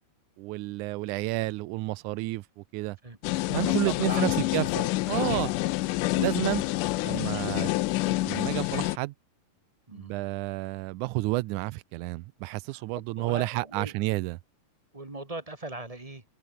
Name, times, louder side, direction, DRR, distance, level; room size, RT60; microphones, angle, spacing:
voice 1, 0.4-3.0 3.5-5.5 6.2-6.6 7.0-7.7 8.1-9.1 9.9-14.4, right 20 dB, 80° right, 2.0 m, -31 dB
sound 1, 3.2-9.0, left 19 dB, 85° left, 2.2 m, -27 dB
voice 2, 3.6-4.5 6.3-6.5 9.9-10.2 12.7-13.9 14.9-16.2, right 2 dB, 15° right, 1.2 m, -39 dB
open air
omnidirectional pair, 3.6 m